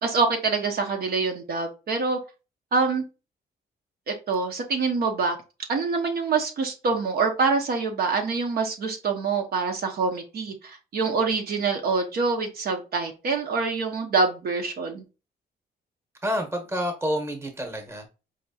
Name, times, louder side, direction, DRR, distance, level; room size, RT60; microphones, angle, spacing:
voice 1, 0.0-2.2 2.7-3.0 4.1-5.4 5.7-15.0, right 4 dB, 60° right, 1.0 m, -25 dB
voice 2, 16.2-18.1, equal, 15° right, 1.2 m, -28 dB
4.9 x 2.9 x 2.8 m
cardioid pair, 130°, 18 cm